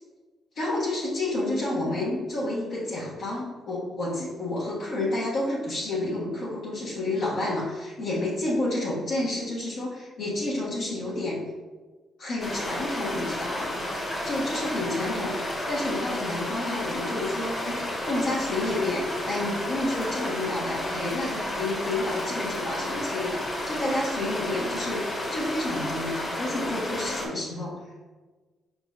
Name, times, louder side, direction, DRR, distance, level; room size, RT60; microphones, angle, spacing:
voice 1, 0.5-11.5 12.2-13.7 14.2-27.7, left 2 dB, 65° left, -8 dB, 1.3 m, -30 dB
sound 1, 12.4-27.3, left 1 dB, 35° left, 1.4 m, -32 dB
5.3 x 3.8 x 2.5 m, 1.3 s
cardioid pair, 90°, 0 cm